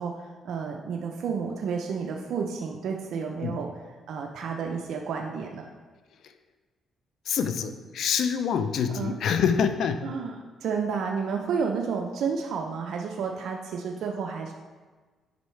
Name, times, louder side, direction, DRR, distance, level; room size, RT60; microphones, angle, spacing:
voice 1, 0.0-3.7 4.1-5.7 8.9-9.2 10.0-14.5, right 5 dB, 70° right, 1 dB, 0.6 m, -31 dB
voice 2, 7.3-10.0, left 7 dB, 70° left, 9 dB, 0.5 m, -26 dB
8.0 x 5.4 x 3.2 m, 1.4 s
cardioid pair, 90°, 0 cm